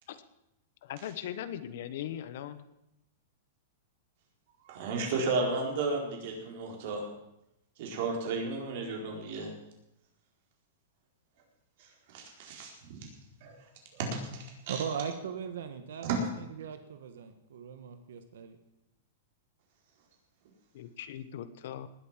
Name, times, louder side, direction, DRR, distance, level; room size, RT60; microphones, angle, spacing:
voice 1, 0.8-2.6 20.7-21.9, left 10 dB, 60° left, 13 dB, 1.2 m, -39 dB
voice 2, 4.7-7.1 7.8-9.5 11.8-13.0 13.4-13.5 14.0-14.8 16.0-16.2, right 3 dB, 50° right, 0 dB, 4.5 m, -33 dB
voice 3, 14.7-18.6, right 7 dB, 80° right, 8 dB, 1.5 m, -39 dB
19.0 x 8.4 x 7.5 m, 0.84 s
supercardioid pair, 155°, 0 cm